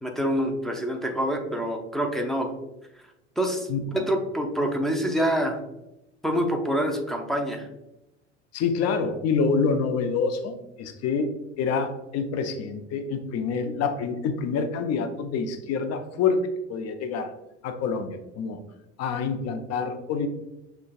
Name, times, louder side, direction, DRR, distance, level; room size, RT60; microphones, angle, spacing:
voice 1, 0.0-2.5 3.4-3.7 3.9-5.6 6.2-7.7, equal, ahead, 2 dB, 0.5 m, -26 dB
voice 2, 3.7-4.1 8.5-11.3 11.6-17.3 17.6-18.6 19.0-20.3, left 5 dB, 45° left, 8 dB, 0.6 m, -27 dB
6.2 x 2.3 x 2.3 m, 0.94 s
hypercardioid pair, 70°, 36 cm